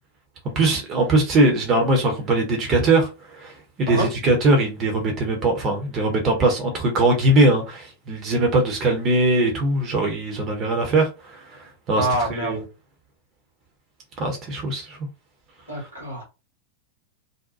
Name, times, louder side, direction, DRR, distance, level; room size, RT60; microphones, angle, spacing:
voice 1, 0.5-12.6 14.2-15.0, right 2 dB, 30° right, 0.8 m, -21 dB
voice 2, 11.9-12.6 15.7-16.2, right 1 dB, 90° right, 1.3 m, -25 dB
2.7 x 2.1 x 2.5 m
figure-of-eight pair, 90°, 0 cm